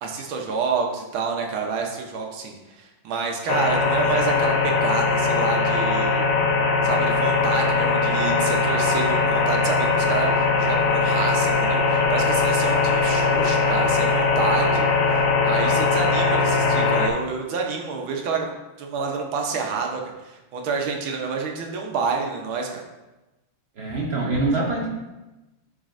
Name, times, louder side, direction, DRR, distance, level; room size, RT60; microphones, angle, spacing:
voice 1, 0.0-6.3 6.8-22.8, right 5 dB, 70° right, 1 dB, 1.6 m, -28 dB
sound 1, 3.5-17.1, left 4 dB, 75° left, 1.5 m, -20 dB
voice 2, 23.8-24.9, right 2 dB, 50° right, -2 dB, 0.7 m, -24 dB
11.0 x 4.2 x 2.6 m, 1.0 s
omnidirectional pair, 2.4 m